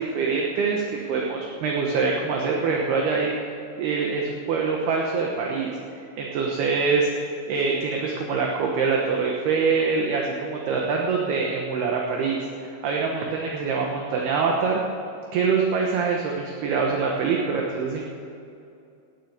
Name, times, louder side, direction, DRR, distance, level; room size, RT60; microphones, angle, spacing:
voice 1, 0.0-3.3 3.8-5.8 6.2-7.1 7.5-14.8 15.3-18.0, right 5 dB, 65° right, 0 dB, 2.8 m, -24 dB
14.5 x 10.0 x 9.4 m, 2.5 s
omnidirectional pair, 5.6 m